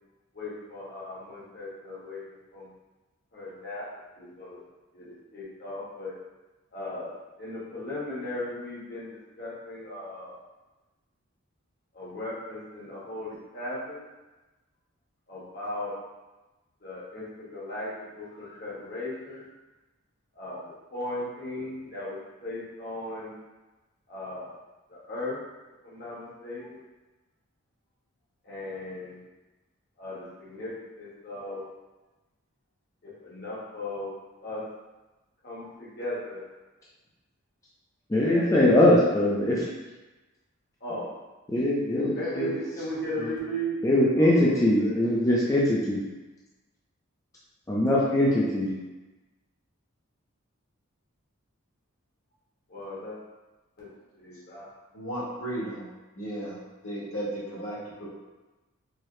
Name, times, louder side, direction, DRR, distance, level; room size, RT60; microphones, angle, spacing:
voice 1, 0.3-2.2 2.5-2.7 3.3-3.8 4.2-4.6 4.9-6.1 6.7-7.1 7.4-9.1 9.4-10.4 11.9-14.0 15.3-15.9 16.8-17.9 18.1-19.4 20.3-20.6 20.9-23.3 24.1-24.5 24.9-25.4 25.8-26.8 28.4-29.2 30.0-30.7 31.0-31.6 33.0-34.1 34.4-34.6 35.4-36.4 38.3-38.5 40.8-41.1 42.1-43.8 44.1-45.1 52.7-53.2 53.8-53.9 54.2-54.7, left 1 dB, 45° left, -8 dB, 1.1 m, -37 dB
voice 2, 38.1-39.7 41.5-42.5 43.2-43.3 43.8-46.0 47.7-48.7, left 1 dB, 15° left, -6 dB, 0.4 m, -22 dB
voice 3, 54.9-55.9 56.1-58.1, right 1 dB, 80° left, -8 dB, 1.3 m, -35 dB
4.6 x 2.0 x 3.1 m, 1.1 s
head